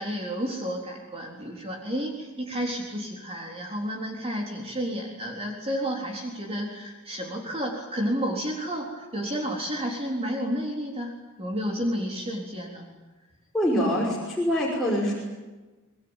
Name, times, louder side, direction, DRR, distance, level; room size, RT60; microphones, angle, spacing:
voice 1, 0.0-12.9, equal, 30° right, 0 dB, 3.8 m, -31 dB
voice 2, 13.5-15.1, equal, ahead, -6 dB, 5.7 m, -24 dB
25.5 x 21.0 x 9.0 m, 1.2 s
head